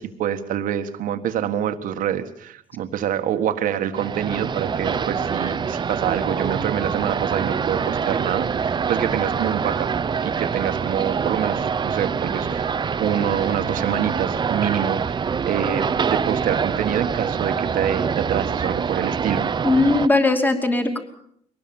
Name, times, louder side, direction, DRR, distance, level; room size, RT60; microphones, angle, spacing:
voice 1, 0.0-9.9 10.2-19.5, right 9 dB, 75° right, 9 dB, 1.7 m, -26 dB
sound 1, 4.0-20.1, right 6 dB, 30° right, 0.9 m, -25 dB
voice 2, 19.6-21.0, left 2 dB, 15° left, 6 dB, 2.7 m, -19 dB
22.5 x 19.0 x 7.1 m, 0.67 s
cardioid pair, 120°, 14 cm